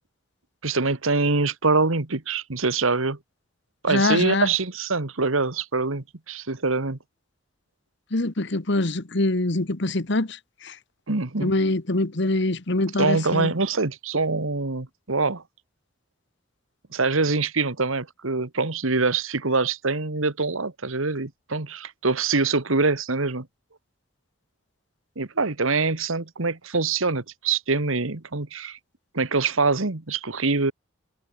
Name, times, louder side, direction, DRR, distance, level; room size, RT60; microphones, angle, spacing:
voice 1, 0.6-3.2 3.8-7.0 11.1-11.5 13.0-15.4 16.9-23.5 25.1-28.8 29.1-30.7, right 3 dB, 80° right, 1.7 m, -24 dB
voice 2, 3.9-4.5 8.1-10.4 10.6-10.7 11.4-13.5, left 2 dB, 60° left, 1.5 m, -24 dB
head